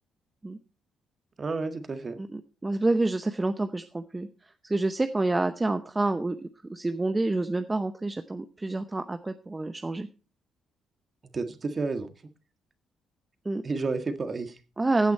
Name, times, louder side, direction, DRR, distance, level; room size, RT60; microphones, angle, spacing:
voice 1, 1.4-2.2 11.3-12.1 13.6-14.6, right 3 dB, 35° right, 8 dB, 1.7 m, -31 dB
voice 2, 2.2-4.3 4.6-10.1 13.4-13.6 14.8-15.1, right 2 dB, 20° right, 8 dB, 0.8 m, -28 dB
15.5 x 8.3 x 4.2 m, 0.35 s
cardioid pair, 90°, 0 cm